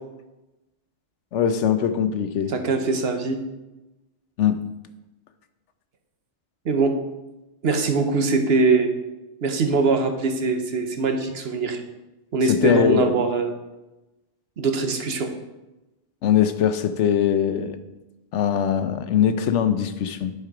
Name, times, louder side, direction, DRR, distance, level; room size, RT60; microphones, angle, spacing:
voice 1, 1.3-2.5 4.4-4.6 12.5-13.2 16.2-17.8 18.3-20.3, left 9 dB, 85° left, 10 dB, 1.0 m, -21 dB
voice 2, 2.5-3.4 6.6-6.9 7.6-8.9 9.4-11.8 12.3-13.5 14.6-15.3, right 3 dB, 60° right, 6 dB, 1.1 m, -22 dB
10.5 x 4.6 x 4.9 m, 1.0 s
omnidirectional pair, 1.2 m